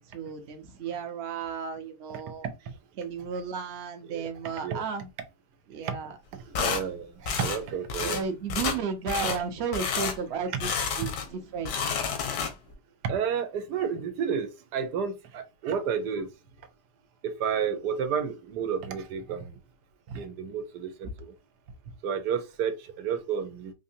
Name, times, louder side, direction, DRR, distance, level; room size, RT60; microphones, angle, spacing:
voice 1, 0.0-2.5 3.0-5.1 5.7-6.1 8.0-10.7 11.0-11.1 11.5-11.7, right 6 dB, 50° right, 0.8 m, -33 dB
voice 2, 4.1-4.8 5.8-6.0 6.3-8.2 11.0-11.4 13.0-16.3 17.2-19.6 20.1-21.3 22.0-23.7, right 7 dB, 80° right, 1.2 m, -31 dB
sound 1, 6.5-6.8 7.3-7.6 7.9-8.2 8.5-8.8 9.1-9.4 9.7-10.2 10.6-11.3 11.6-12.7, left 6 dB, 90° left, 1.4 m, -30 dB
4.1 x 2.6 x 2.6 m
omnidirectional pair, 1.8 m